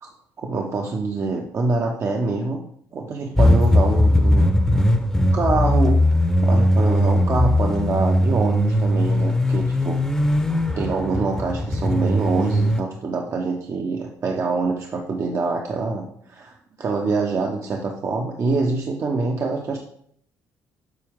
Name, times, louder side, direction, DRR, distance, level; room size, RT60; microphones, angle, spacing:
voice 1, 0.4-2.6 2.9-4.9 5.3-6.0 6.4-10.0 10.8-19.8, right 3 dB, 50° right, 0 dB, 1.0 m, -25 dB
sound 1, 3.4-12.8, left 1 dB, 10° left, 0.9 m, -19 dB
8.2 x 4.4 x 3.6 m, 0.66 s
supercardioid pair, 70°, 7 cm